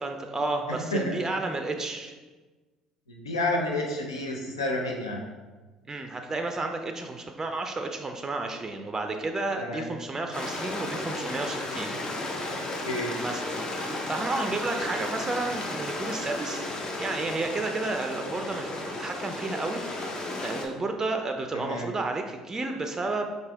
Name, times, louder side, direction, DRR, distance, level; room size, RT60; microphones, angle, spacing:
voice 1, 0.0-2.1 5.9-11.9 13.2-16.7 17.0-23.2, right 2 dB, 20° right, 5 dB, 0.4 m, -32 dB
voice 2, 0.7-1.1 3.1-5.2 9.6-9.9 12.8-13.1 21.5-21.9, left 1 dB, 85° left, 0 dB, 0.6 m, -30 dB
Stream, 10.3-20.7, left 2 dB, 35° left, 0.7 m, -34 dB
4.9 x 2.6 x 3.4 m, 1.3 s
hypercardioid pair, 60°, 2 cm